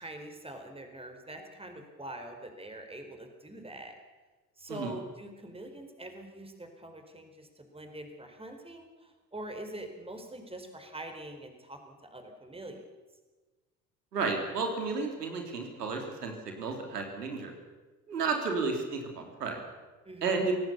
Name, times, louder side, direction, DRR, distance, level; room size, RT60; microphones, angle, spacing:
voice 1, 0.0-4.0 4.6-12.8 20.0-20.4, right 1 dB, 10° right, 5 dB, 4.7 m, -44 dB
voice 2, 14.1-17.5 18.1-19.6 20.2-20.5, right 4 dB, 85° right, 4 dB, 3.2 m, -32 dB
25.5 x 18.0 x 6.9 m, 1.3 s
figure-of-eight pair, 65°, 46 cm